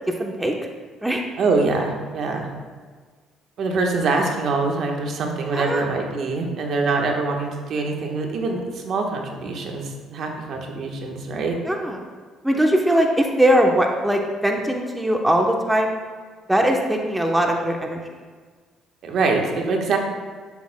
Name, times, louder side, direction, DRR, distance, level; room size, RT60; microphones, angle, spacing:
voice 1, 0.2-0.5 1.0-1.2 5.5-5.8 11.7-12.0 12.4-15.9 16.5-18.0, right 1 dB, 5° right, 1 dB, 0.9 m, -20 dB
voice 2, 1.4-2.5 3.6-11.6 19.0-20.0, right 3 dB, 60° right, 2 dB, 1.2 m, -24 dB
11.0 x 7.2 x 2.2 m, 1.5 s
cardioid pair, 85°, 0 cm